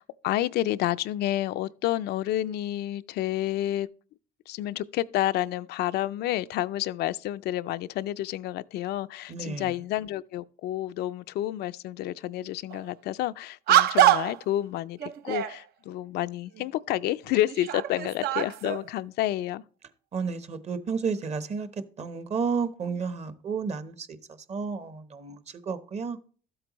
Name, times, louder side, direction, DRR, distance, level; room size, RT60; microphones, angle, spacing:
voice 1, 0.0-3.9 4.5-19.6, left 14 dB, 75° left, 0.4 m, -30 dB
voice 2, 9.3-9.7 20.1-21.7 22.0-24.2 24.5-25.4 25.7-26.2, right 5 dB, 40° right, 0.9 m, -31 dB
sound 1, 12.7-12.9 13.7-14.4 15.0-15.6 16.6-16.7 17.3-18.9, right 11 dB, 70° right, 0.6 m, -24 dB
12.5 x 7.9 x 3.0 m
cardioid pair, 110°, 17 cm